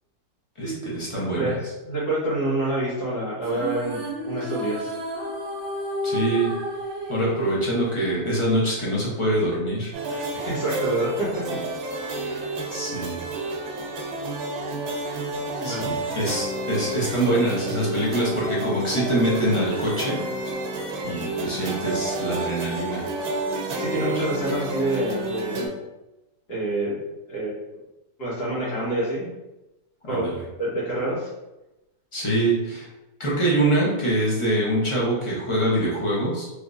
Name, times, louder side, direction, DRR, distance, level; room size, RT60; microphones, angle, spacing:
voice 1, 0.6-1.5 6.0-6.5 7.1-10.2 12.2-12.4 12.7-13.2 15.6-20.2 21.0-23.0 30.1-30.4 32.1-32.9 33.2-36.5, right 1 dB, 30° left, -6 dB, 0.6 m, -24 dB
voice 2, 1.8-4.9 10.3-11.3 11.9-12.4 15.6-15.9 23.8-25.7 26.5-27.0 27.3-27.5 28.2-29.3 30.1-31.3, right 1 dB, 90° left, -8 dB, 1.9 m, -27 dB
sound 1, 3.4-8.9, right 1 dB, 60° right, 0.7 m, -32 dB
sound 2, 9.9-25.7, right 2 dB, 80° right, 1.1 m, -30 dB
3.3 x 3.0 x 2.5 m, 1.0 s
omnidirectional pair, 1.6 m